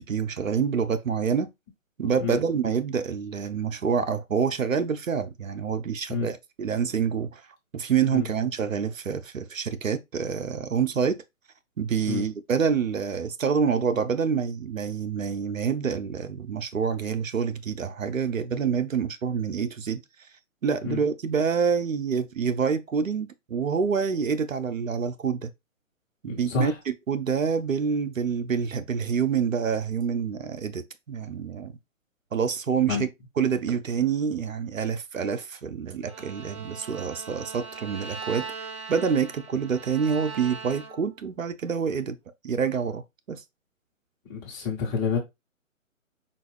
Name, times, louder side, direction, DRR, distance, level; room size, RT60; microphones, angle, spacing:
voice 1, 0.0-1.5 2.0-7.4 7.7-11.2 11.8-20.0 20.6-25.5 26.2-26.7 27.1-31.7 32.3-33.1 33.4-42.2 42.4-43.4, right 6 dB, 75° right, 0.8 m, -27 dB
voice 2, 26.3-26.7 32.9-33.0 44.3-45.2, left 5 dB, 15° left, 1.0 m, -28 dB
Bowed string instrument, 36.1-41.2, right 5 dB, 25° right, 0.5 m, -40 dB
5.4 x 2.5 x 3.4 m
figure-of-eight pair, 140°, 40 cm